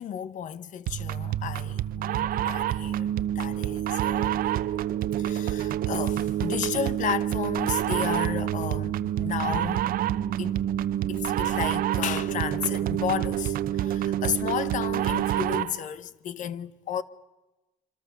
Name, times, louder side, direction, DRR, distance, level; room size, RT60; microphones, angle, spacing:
voice 1, 0.0-3.1 3.3-4.5 5.2-9.8 10.4-10.6 11.1-17.0, left 9 dB, 55° left, 1.0 m, -33 dB
sound 1, 0.9-15.8, right 12 dB, 70° right, 0.8 m, -27 dB
27.0 x 26.0 x 6.9 m
cardioid pair, 175°, 15 cm